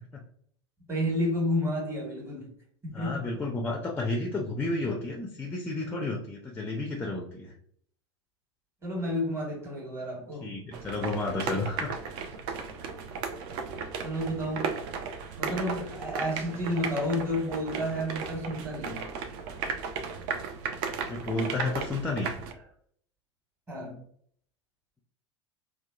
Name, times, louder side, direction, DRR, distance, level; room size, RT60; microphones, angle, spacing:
voice 1, 0.9-2.5 2.8-3.2 8.8-10.5 14.0-14.7 15.4-19.0 23.7-24.0, equal, 15° right, 1.2 m, -31 dB
voice 2, 2.9-7.5 10.4-11.9 21.1-22.3, left 2 dB, 10° left, 0.4 m, -31 dB
sound 1, 10.7-22.5, right 5 dB, 50° right, 0.4 m, -35 dB
2.8 x 2.1 x 2.3 m
figure-of-eight pair, 80°, 15 cm